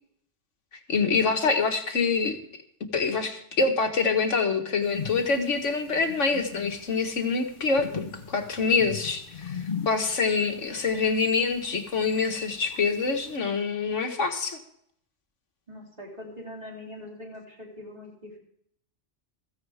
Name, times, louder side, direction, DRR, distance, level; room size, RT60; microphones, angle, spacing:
voice 1, 0.9-2.4 2.9-14.6, left 4 dB, 80° left, 4 dB, 1.9 m, -26 dB
sound 1, 4.8-13.4, left 6 dB, 45° left, 1.1 m, -40 dB
voice 2, 15.7-18.4, left 1 dB, 35° right, -3 dB, 3.2 m, -42 dB
15.5 x 15.0 x 3.5 m, 0.67 s
omnidirectional pair, 1.2 m